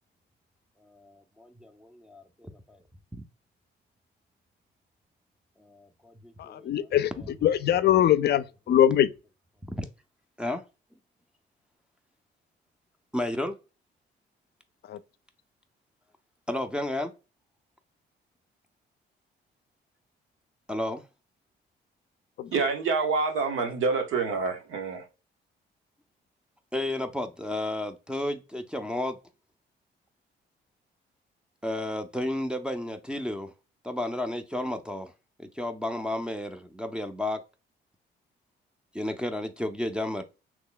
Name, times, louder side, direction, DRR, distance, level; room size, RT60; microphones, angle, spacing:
voice 1, 0.9-2.8 5.6-7.9 9.7-9.9 10.4-10.6 13.1-13.5 16.5-17.1 20.7-21.0 26.7-29.2 31.6-33.5 33.8-35.1 35.6-37.4 38.9-40.2, left 1 dB, 5° right, 0.5 m, -32 dB
voice 2, 6.5-7.1 7.4-9.1 14.9-15.0 22.4-22.5, left 11 dB, 55° left, 0.4 m, -22 dB
voice 3, 22.5-25.0, right 4 dB, 85° right, 1.0 m, -27 dB
3.0 x 2.2 x 3.8 m
cardioid pair, 90°, 20 cm